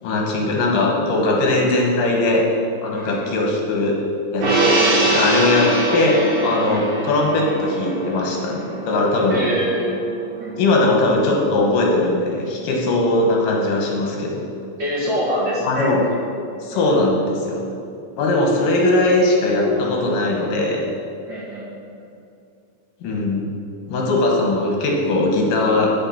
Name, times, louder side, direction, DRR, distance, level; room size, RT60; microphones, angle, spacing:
voice 1, 0.0-2.4 2.8-4.0 4.3-9.4 10.6-14.4 15.6-16.1 16.6-17.6 18.2-20.8 23.0-23.4 23.9-25.9, left 2 dB, 80° left, 0 dB, 3.0 m, -19 dB
voice 2, 2.9-3.3 4.8-4.9 5.4-5.5 6.7-7.0 9.3-10.0 10.4-10.5 14.8-16.2 16.7-16.8 21.3-22.1, equal, 45° right, -7 dB, 1.9 m, -26 dB
Gong, 4.4-11.0 11.4-11.5, right 2 dB, 70° right, 3.4 m, -23 dB
9.4 x 6.7 x 5.8 m, 2.5 s
omnidirectional pair, 3.8 m